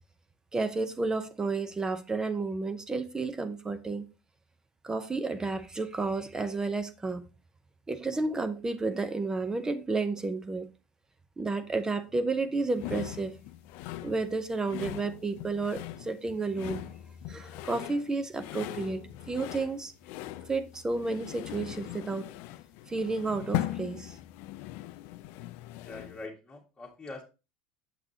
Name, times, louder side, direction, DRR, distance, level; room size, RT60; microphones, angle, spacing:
voice 1, 0.5-4.1 4.8-7.3 7.9-10.7 11.4-13.4 14.0-16.8 17.3-19.9 20.5-22.3 22.9-24.2, right 3 dB, 15° right, 0.6 m, -31 dB
sound 1, 12.8-26.3, left 15 dB, 65° left, 0.4 m, -40 dB
voice 2, 25.8-27.2, left 2 dB, 15° left, 1.7 m, -43 dB
6.7 x 5.9 x 2.7 m
supercardioid pair, 105°, 4 cm